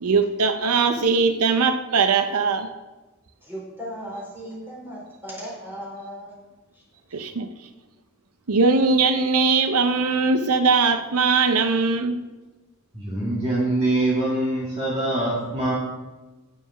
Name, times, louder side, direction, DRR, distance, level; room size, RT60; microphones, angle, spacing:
voice 1, 0.0-2.7 7.1-7.5 8.5-12.2, right 4 dB, 90° right, 9 dB, 0.7 m, -20 dB
voice 2, 3.4-6.4 6.7-6.8 7.1-7.2, equal, 10° right, -5 dB, 4.2 m, -37 dB
voice 3, 12.9-15.7, right 1 dB, 25° right, -6 dB, 1.8 m, -24 dB
9.5 x 7.1 x 6.0 m, 1.2 s
head